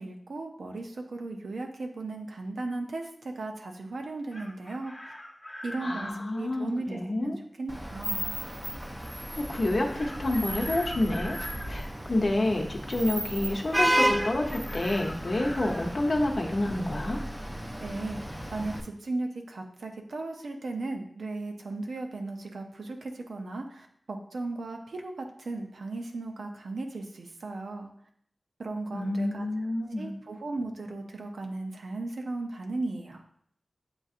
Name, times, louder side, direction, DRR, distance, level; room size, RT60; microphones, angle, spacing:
voice 1, 0.0-5.1 5.6-8.3 17.8-27.9 28.6-29.5 30.0-33.2, right 2 dB, 85° right, 3 dB, 0.6 m, -36 dB
Chicken rooster, 4.1-6.1 10.0-11.7 14.1-15.9, left 1 dB, 25° left, 1.0 m, -42 dB
voice 2, 5.8-7.4 9.1-11.4 11.6-17.2 28.9-30.1, left 1 dB, 55° left, 1 dB, 0.7 m, -29 dB
Vehicle horn car horn honking / Traffic noise roadway noise, 7.7-18.8, equal, 10° right, 0.5 m, -33 dB
7.7 x 2.7 x 2.4 m, 0.66 s
wide cardioid pair, 65°, 0 cm